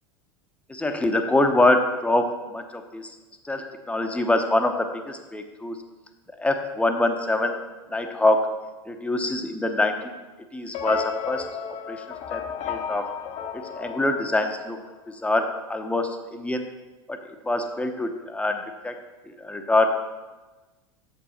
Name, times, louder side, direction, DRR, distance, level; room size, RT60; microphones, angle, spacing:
voice 1, 0.7-3.1 3.4-5.8 6.4-7.6 7.9-8.5 8.9-10.1 10.5-11.5 11.9-12.0 12.3-12.4 12.7-13.1 13.5-14.8 15.1-16.6 17.1-17.2 17.5-18.9 19.4-19.9, left 2 dB, 10° left, 5 dB, 0.8 m, -24 dB
sound 1, 10.7-15.1, left 8 dB, 45° left, 0.9 m, -33 dB
7.1 x 7.0 x 4.3 m, 1.2 s
hypercardioid pair, 85°, 16 cm